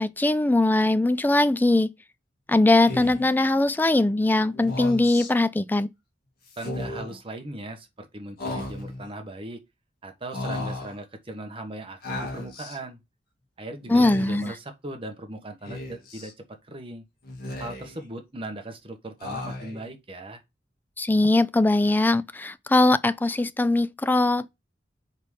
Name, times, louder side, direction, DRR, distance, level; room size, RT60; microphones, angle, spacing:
voice 1, 0.0-1.9 2.5-5.9 13.9-14.5 21.0-24.5, left 2 dB, 10° left, 0.3 m, -21 dB
Speech, 2.8-3.3 4.5-5.3 6.5-7.2 8.4-9.1 10.3-11.0 12.0-12.8 13.8-14.5 15.6-16.3 17.2-18.0 19.2-19.9, left 2 dB, 60° left, 2.1 m, -35 dB
voice 2, 6.6-9.6 10.0-13.0 13.6-16.3 16.6-17.0 17.6-20.4, right 1 dB, 30° right, 1.2 m, -38 dB
4.8 x 4.1 x 5.5 m
head